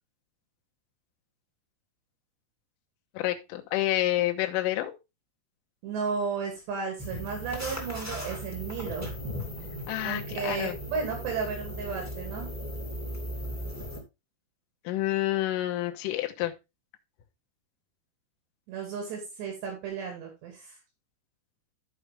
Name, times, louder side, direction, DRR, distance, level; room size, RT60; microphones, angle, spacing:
voice 1, 3.1-4.9 9.9-10.8 14.8-16.5, left 15 dB, 70° left, 3 dB, 2.2 m, -28 dB
voice 2, 5.8-9.1 10.0-12.5 18.7-20.8, right 5 dB, 75° right, 1 dB, 4.3 m, -34 dB
sound 1, 7.0-14.0, equal, 15° left, 0.6 m, -37 dB
14.0 x 4.9 x 3.3 m, 0.25 s
omnidirectional pair, 5.0 m